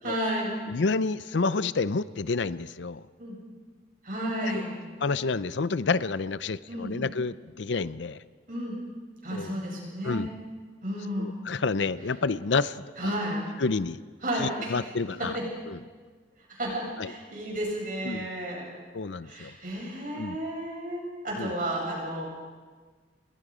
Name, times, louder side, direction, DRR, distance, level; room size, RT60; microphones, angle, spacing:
voice 1, 0.0-0.6 3.2-3.4 4.0-4.8 6.7-6.9 8.5-8.8 9.2-10.2 10.8-11.3 13.0-13.4 14.2-14.7 15.3-15.4 16.5-18.6 19.2-22.3, right 1 dB, 50° right, -2 dB, 7.9 m, -32 dB
voice 2, 0.7-3.0 4.4-4.5 5.0-8.2 9.3-9.6 10.0-10.3 11.2-13.1 13.6-14.0 14.4-15.4 15.7-15.8 17.0-17.1 18.0-18.3 18.9-19.5 20.1-20.4 21.4-21.5, left 4 dB, 80° left, 16 dB, 0.6 m, -29 dB
29.5 x 21.5 x 5.1 m, 1.5 s
head